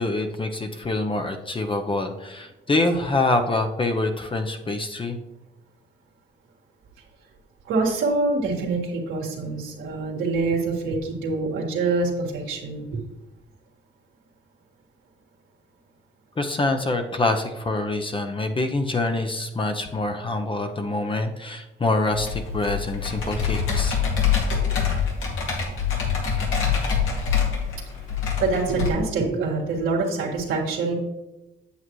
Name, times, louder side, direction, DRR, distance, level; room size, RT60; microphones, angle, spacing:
voice 1, 0.0-5.2 16.4-24.0, left 2 dB, 25° left, 5 dB, 0.7 m, -25 dB
voice 2, 7.7-13.0 24.5-24.8 28.4-31.0, right 3 dB, 85° right, -2 dB, 1.8 m, -25 dB
Computer keyboard, 22.1-28.9, left 7 dB, 80° left, 2.3 m, -25 dB
8.3 x 7.8 x 3.1 m, 1.0 s
cardioid pair, 90°, 20 cm